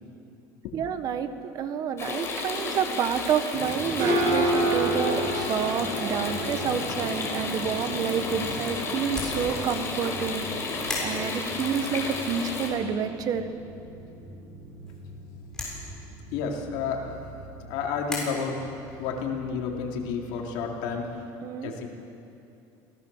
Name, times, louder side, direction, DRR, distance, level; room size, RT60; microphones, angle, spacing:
voice 1, 0.7-10.5 10.7-13.5 21.4-21.7, right 7 dB, 45° right, 9 dB, 1.4 m, -29 dB
sound 1, 2.0-12.7, left 3 dB, 30° left, 4.9 m, -32 dB
sound 2, 3.5-21.0, right 1 dB, 75° right, 6.5 m, -33 dB
sound 3, 9.0-18.2, left 2 dB, 5° left, 7.0 m, -41 dB
voice 2, 16.3-17.1 17.6-18.6 19.0-21.1 21.6-21.9, left 6 dB, 70° left, 0 dB, 3.8 m, -31 dB
28.0 x 18.0 x 7.4 m, 2.8 s
cardioid pair, 140°, 9 cm